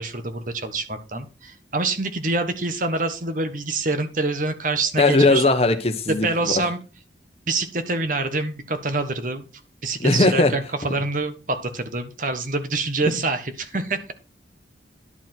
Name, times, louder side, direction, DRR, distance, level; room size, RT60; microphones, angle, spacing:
voice 1, 0.0-5.4 6.1-6.8 7.5-9.4 9.8-14.1, right 3 dB, 45° right, 8 dB, 1.3 m, -26 dB
voice 2, 5.0-6.3 6.5-6.6 10.0-10.5, left 2 dB, 35° left, 8 dB, 1.2 m, -18 dB
11.0 x 4.9 x 6.0 m, 0.32 s
head